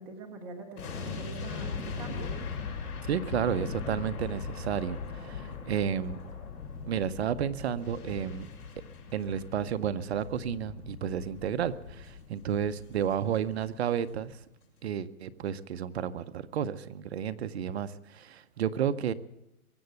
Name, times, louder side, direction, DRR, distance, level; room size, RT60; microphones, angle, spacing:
voice 1, 0.0-2.3, right 3 dB, 5° right, -1 dB, 0.5 m, -44 dB
sound 1, 0.8-13.9 14.2-14.4, left 5 dB, 85° left, 6.4 m, -40 dB
voice 2, 3.1-6.2 6.9-8.5 9.1-14.4 14.8-19.1, right 8 dB, 45° right, 13 dB, 0.7 m, -32 dB
22.5 x 7.9 x 8.0 m, 0.90 s
hypercardioid pair, 160°, 44 cm